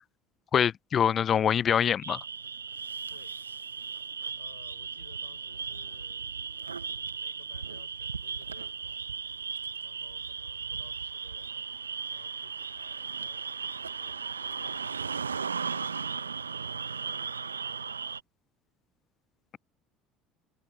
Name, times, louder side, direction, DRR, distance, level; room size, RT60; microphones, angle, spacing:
voice 1, 0.5-2.2, left 8 dB, 40° left, 0.5 m, -24 dB
sound 1, 2.0-18.2, right 6 dB, 85° right, 1.0 m, -36 dB
voice 2, 3.0-3.4 4.4-6.3 6.9-8.8 9.8-11.7 12.1-14.9 15.6-16.3 17.0-18.0, left 8 dB, 80° left, 4.8 m, -57 dB
figure-of-eight pair, 65°, 0 cm